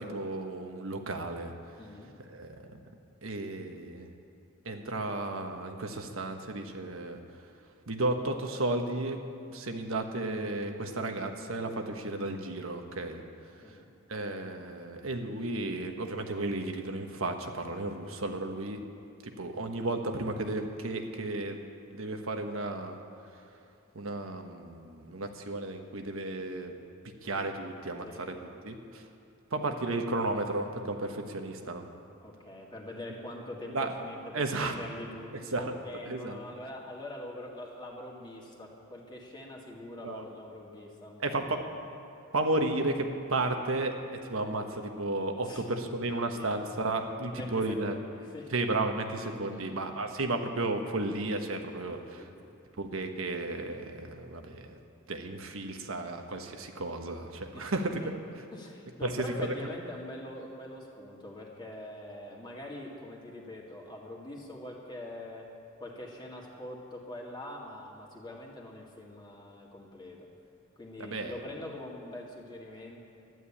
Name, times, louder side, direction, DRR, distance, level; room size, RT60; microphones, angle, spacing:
voice 1, 0.0-1.5 2.3-2.5 3.2-4.1 4.6-7.2 7.9-9.2 9.5-13.2 14.1-18.8 19.2-21.6 21.9-23.0 23.9-26.7 27.2-28.3 28.6-29.0 29.5-31.9 33.7-33.9 34.3-34.7 35.5-35.8 36.1-36.4 40.0-40.2 41.2-41.6 42.3-43.9 44.3-48.0 48.5-52.3 52.8-54.8 55.1-57.9 59.0-59.5 71.0-71.3, right 2 dB, 75° right, 5 dB, 1.3 m, -33 dB
voice 2, 1.8-2.1 13.6-13.9 28.0-28.3 32.2-41.6 45.4-45.7 46.3-46.5 47.2-48.7 49.5-49.8 51.8-52.5 57.5-58.1 58.5-65.5 65.8-70.3 70.8-73.0, left 1 dB, 20° left, -2 dB, 2.0 m, -44 dB
12.5 x 11.0 x 8.5 m, 2.7 s
head